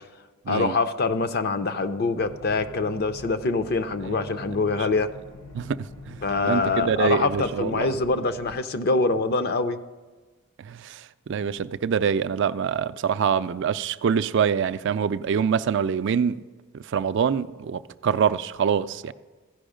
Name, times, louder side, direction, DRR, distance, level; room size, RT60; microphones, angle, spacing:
voice 1, 0.5-5.1 6.2-9.8, left 3 dB, 45° left, 0.5 m, -24 dB
sound 1, 2.2-8.5, left 2 dB, 75° left, 3.5 m, -44 dB
voice 2, 6.4-7.9 10.7-10.8 11.3-16.4 16.9-19.1, right 7 dB, 55° right, 0.3 m, -24 dB
15.0 x 5.4 x 5.0 m
head